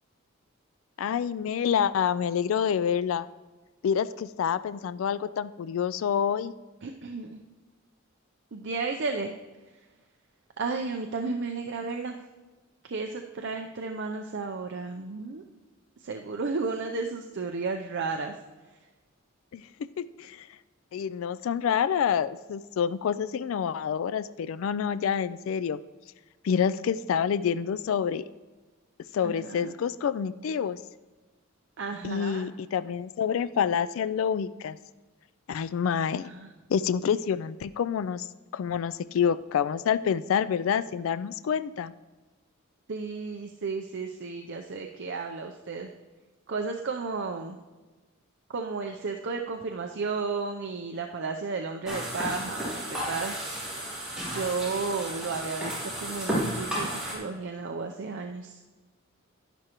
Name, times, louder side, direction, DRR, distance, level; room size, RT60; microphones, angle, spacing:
voice 1, 1.0-3.3 3.8-6.5 19.5-20.5 20.9-25.8 26.4-28.2 29.1-30.8 32.0-34.8 35.5-36.3 36.7-38.3 38.5-41.9, left 7 dB, 65° left, 15 dB, 0.3 m, -27 dB
voice 2, 6.8-7.4 8.5-9.3 10.6-12.2 12.8-15.4 16.0-18.4 29.2-29.7 31.8-32.5 36.1-36.5 42.9-45.9 46.5-47.6 48.5-53.4 54.2-58.6, right 4 dB, 60° right, 3 dB, 0.6 m, -33 dB
sound 1, 51.9-57.1, equal, 5° right, 3.1 m, -33 dB
11.0 x 11.0 x 3.0 m, 1.2 s
head